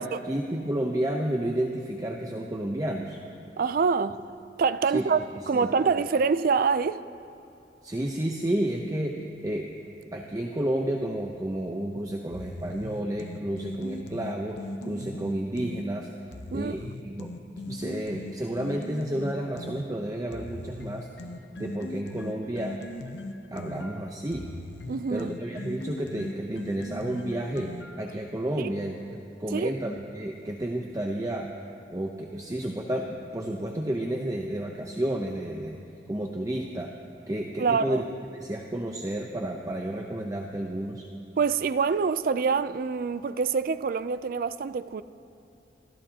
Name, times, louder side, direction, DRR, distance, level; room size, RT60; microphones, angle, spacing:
voice 1, 0.0-3.2 4.9-5.7 7.8-9.7 10.1-16.1 16.5-17.3 17.7-21.1 21.6-22.8 23.5-24.5 25.1-31.5 31.9-35.8 36.1-36.9 37.3-38.0 38.3-41.1, right 1 dB, 20° right, 0.7 m, -31 dB
voice 2, 3.6-4.2 4.6-5.2 5.5-7.0 16.5-16.7 24.9-25.3 28.6-28.7 29.5-29.8 37.6-38.0 41.4-45.0, right 5 dB, 55° right, 0.4 m, -25 dB
sound 1, 12.3-15.9 16.3-19.9 20.3-28.1, left 2 dB, 80° left, 0.7 m, -39 dB
27.5 x 13.5 x 2.8 m
head